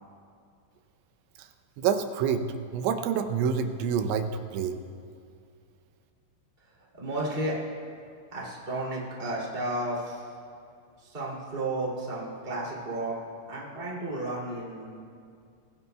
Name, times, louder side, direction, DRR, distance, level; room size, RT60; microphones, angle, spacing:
voice 1, 1.8-2.5 2.7-4.8, right 7 dB, 80° right, 6 dB, 3.0 m, -27 dB
voice 2, 7.0-7.5 8.3-10.2 11.0-13.2 13.5-14.9, right 2 dB, 20° right, -5 dB, 1.6 m, -32 dB
25.5 x 15.5 x 2.3 m, 2.4 s
omnidirectional pair, 5.5 m